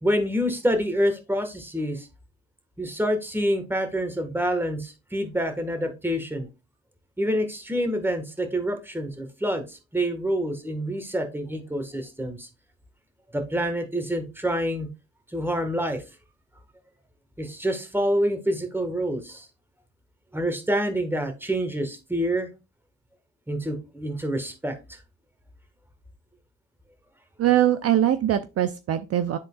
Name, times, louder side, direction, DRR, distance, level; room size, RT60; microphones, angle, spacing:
voice 1, 0.0-2.1 2.8-6.5 7.2-12.5 13.3-14.9 15.3-16.0 17.4-19.5 20.3-22.5 23.5-24.8, equal, 5° right, 6 dB, 1.4 m, -27 dB
voice 2, 27.4-29.4, right 12 dB, 55° right, 10 dB, 0.5 m, -22 dB
11.0 x 3.8 x 2.3 m, 0.27 s
cardioid pair, 90°, 30 cm